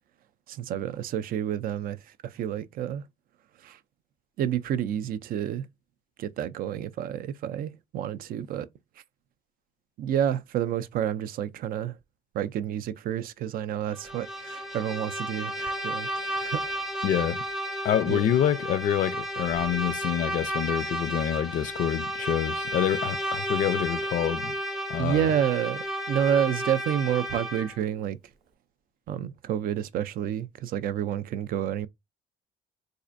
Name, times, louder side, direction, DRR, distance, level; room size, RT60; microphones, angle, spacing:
voice 1, 0.5-3.1 3.6-3.8 4.4-5.7 6.2-8.7 10.0-12.0 12.3-16.8 18.1-18.2 25.0-28.2 29.1-31.9, right 10 dB, 60° right, 0.4 m, -29 dB
Bowed string instrument, 13.9-27.8, equal, ahead, 0.5 m, -32 dB
voice 2, 17.0-17.4 17.8-24.5 24.9-25.3, left 10 dB, 50° left, 0.4 m, -27 dB
4.1 x 2.5 x 2.5 m
cardioid pair, 110°, 17 cm